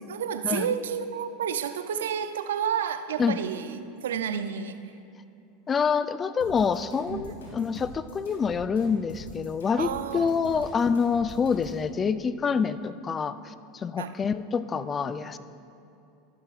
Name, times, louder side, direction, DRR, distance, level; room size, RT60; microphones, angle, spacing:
voice 1, 0.1-4.8 7.1-7.5 9.8-10.7 14.0-14.2, right 8 dB, 80° right, 10 dB, 0.5 m, -31 dB
voice 2, 5.7-15.4, left 6 dB, 30° left, 13 dB, 0.4 m, -27 dB
sound 1, 6.4-11.8, left 1 dB, 90° left, 2.6 m, -44 dB
13.0 x 12.0 x 2.4 m, 2.7 s
hypercardioid pair, 90°, 0 cm